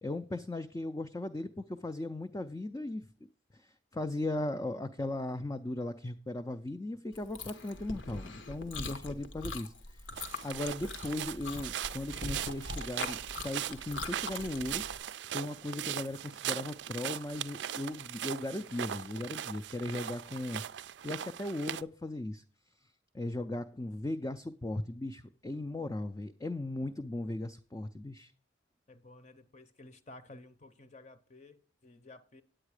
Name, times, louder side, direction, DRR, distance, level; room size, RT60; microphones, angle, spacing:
voice 1, 0.0-3.1 3.5-13.2 13.4-14.8 15.3-20.6 21.0-22.4 23.1-28.3, left 1 dB, 20° left, 7 dB, 0.4 m, -37 dB
Chewing mastication, 7.1-15.0, left 3 dB, 85° left, 1.1 m, -42 dB
sound 1, 10.2-21.8, right 10 dB, 65° right, 0.4 m, -39 dB
voice 2, 28.9-32.4, left 2 dB, 35° left, 10 dB, 0.7 m, -54 dB
9.0 x 8.8 x 4.9 m, 0.40 s
head